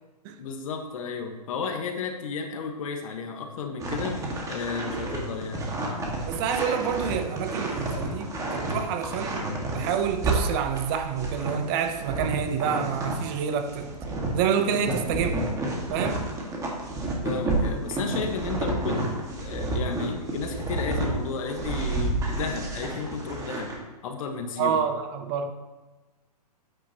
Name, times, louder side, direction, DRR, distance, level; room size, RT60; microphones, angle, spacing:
voice 1, 0.4-4.2 4.5-5.7 14.9-15.3 17.2-23.7 24.0-24.8, left 5 dB, 55° left, 5 dB, 1.4 m, -33 dB
sound 1, 3.8-13.3 13.7-21.1 21.5-23.8, right 2 dB, 15° right, 1.8 m, -30 dB
voice 2, 6.3-9.5 9.7-13.9 14.3-15.4 15.9-16.2 24.6-25.5, right 7 dB, 35° right, 7 dB, 0.8 m, -28 dB
9.2 x 8.9 x 3.0 m, 1.2 s
hypercardioid pair, 130°, 21 cm